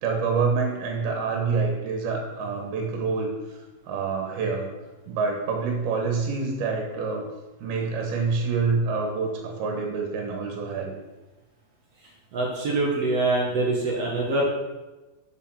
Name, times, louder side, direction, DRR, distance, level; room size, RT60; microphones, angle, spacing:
voice 1, 0.0-3.3 3.9-4.7 5.1-7.3 7.6-10.9, right 4 dB, 80° right, 1 dB, 3.2 m, -26 dB
voice 2, 12.3-14.4, right 2 dB, 55° right, -2 dB, 1.9 m, -24 dB
7.1 x 6.7 x 5.8 m, 1.1 s
omnidirectional pair, 4.3 m